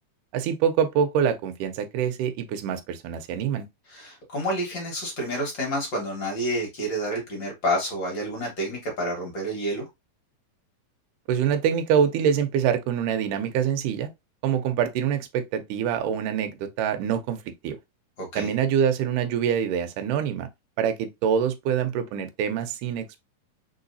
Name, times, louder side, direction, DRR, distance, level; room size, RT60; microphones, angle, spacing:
voice 1, 0.3-3.7 11.3-14.1 14.4-17.8 18.4-20.5 20.8-23.2, right 8 dB, 75° right, 2.1 m, -25 dB
voice 2, 3.9-9.8 18.2-18.5, equal, 45° left, 1.6 m, -29 dB
4.5 x 3.9 x 2.6 m
omnidirectional pair, 4.0 m